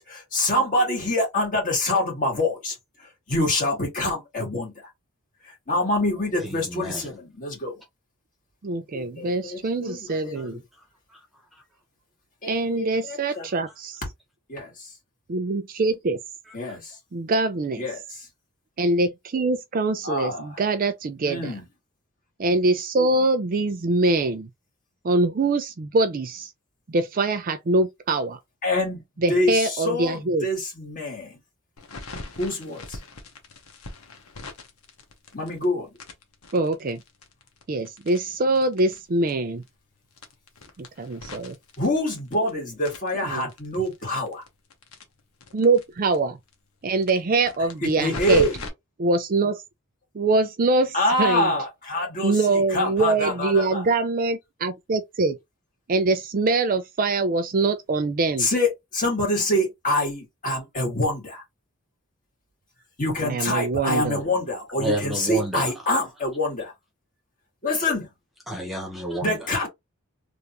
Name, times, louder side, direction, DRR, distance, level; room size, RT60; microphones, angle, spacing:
voice 1, 0.1-2.7 3.3-4.7 5.7-7.7 8.9-10.6 12.4-13.5 14.5-14.9 16.5-16.9 17.8-18.0 20.0-20.5 21.2-21.6 28.6-29.0 29.3-31.4 32.3-33.0 35.3-35.9 41.8-44.4 47.8-48.6 50.9-53.8 58.4-61.4 63.0-66.7 67.6-68.1 69.2-69.7, left 1 dB, 40° left, 1.9 m, -25 dB
voice 2, 6.4-7.1 9.9-10.5 10.7-11.6 13.5-13.6 16.5-16.8 64.8-65.9 67.7-67.8 68.5-69.7, right 1 dB, ahead, 1.0 m, -32 dB
voice 3, 8.6-10.6 12.5-14.0 15.3-16.2 17.1-17.9 18.8-21.6 22.4-24.5 25.0-26.5 26.9-28.4 29.2-30.5 36.5-37.0 37.7-39.6 40.8-41.6 43.3-43.5 45.5-46.4 46.8-48.5 49.0-49.6 50.1-51.5 52.2-55.4 55.9-58.5 63.2-64.2, right 3 dB, 40° right, 0.4 m, -23 dB
sound 1, 31.8-35.6 36.0-39.0 39.3-39.4 39.6-39.7 40.1-42.5 42.8-45.8 46.1-46.2 46.5-46.6 47.0-48.7, left 3 dB, 75° left, 1.0 m, -39 dB
3.4 x 2.6 x 2.9 m
head